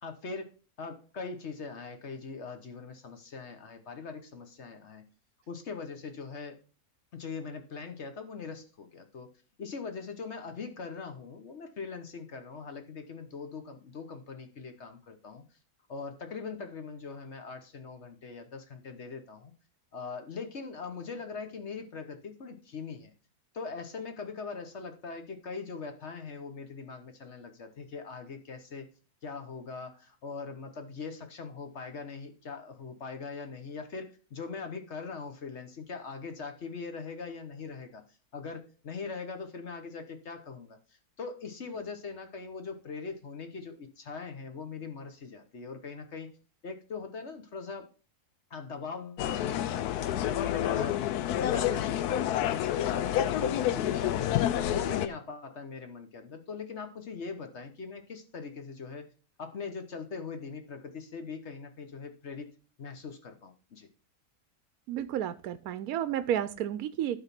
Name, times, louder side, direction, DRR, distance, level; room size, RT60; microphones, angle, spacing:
voice 1, 0.0-0.5 0.8-5.0 5.5-6.6 7.1-9.3 9.6-15.4 15.9-19.5 19.9-23.1 23.5-28.9 29.2-38.0 38.3-46.3 46.6-47.9 48.5-51.0 51.4-54.3 54.6-59.1 59.4-62.5 62.8-63.9, left 5 dB, 50° left, 6 dB, 1.2 m, -41 dB
sound 1, 49.2-55.1, left 11 dB, 85° left, 1.1 m, -29 dB
voice 2, 64.9-67.2, right 10 dB, 75° right, 12 dB, 1.0 m, -31 dB
11.5 x 4.0 x 5.8 m, 0.38 s
omnidirectional pair, 1.6 m